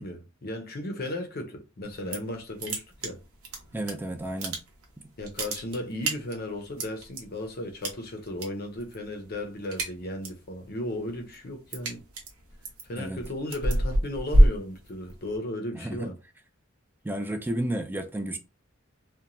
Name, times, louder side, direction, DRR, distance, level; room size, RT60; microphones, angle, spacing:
voice 1, 0.0-3.2 5.2-12.0 12.9-16.1, left 1 dB, 45° left, 0.6 m, -35 dB
sound 1, 1.9-2.3 2.6-3.9 4.2-4.9 5.2-7.2 7.8-8.5 8.8-9.1 9.4-10.5 10.9-15.4, right 1 dB, 80° right, 0.8 m, -26 dB
voice 2, 3.7-4.6 13.0-13.2 15.7-16.1 17.0-18.4, right 1 dB, 10° right, 0.3 m, -32 dB
2.9 x 2.2 x 2.5 m
head